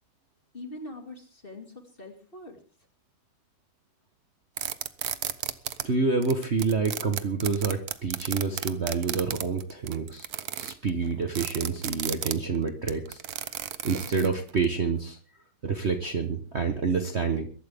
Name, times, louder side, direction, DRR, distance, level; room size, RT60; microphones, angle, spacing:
voice 1, 0.5-2.6, left 1 dB, 25° left, 4 dB, 2.5 m, -43 dB
sound 1, 4.6-5.8 6.2-14.6, right 10 dB, 60° right, 1.1 m, -33 dB
voice 2, 5.8-10.3 10.6-13.2 13.8-15.2 15.6-17.5, right 4 dB, 40° right, 5 dB, 1.3 m, -28 dB
22.0 x 12.5 x 3.6 m, 0.40 s
omnidirectional pair, 2.2 m